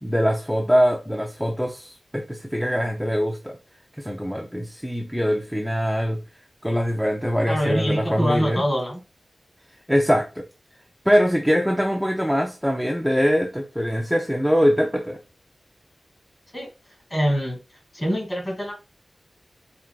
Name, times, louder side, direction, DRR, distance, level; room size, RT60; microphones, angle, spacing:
voice 1, 0.0-3.6 4.0-6.2 6.6-8.6 9.9-10.4 11.1-15.2, equal, ahead, 0.5 m, -23 dB
voice 2, 7.5-9.0 16.5-16.7 17.1-17.6 17.9-18.7, equal, 25° left, 2.5 m, -24 dB
4.5 x 3.7 x 2.3 m
wide cardioid pair, 95°, 0 cm